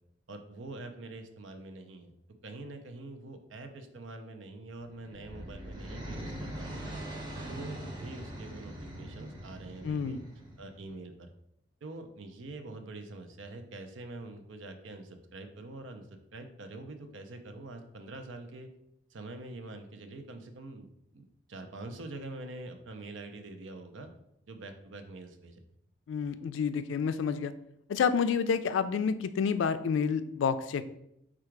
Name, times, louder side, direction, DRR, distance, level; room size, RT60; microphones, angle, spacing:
voice 1, 0.3-2.1 2.4-6.9 7.5-10.2 10.6-11.3 11.8-16.1 16.3-18.7 19.1-24.1 24.5-25.6, right 2 dB, 75° right, 6 dB, 0.6 m, -45 dB
sound 1, 4.9-10.9, right 1 dB, 20° right, 0.8 m, -42 dB
voice 2, 9.8-10.2 26.1-27.5 27.9-30.9, left 6 dB, 75° left, 12 dB, 0.3 m, -29 dB
4.7 x 2.4 x 4.5 m, 0.78 s
head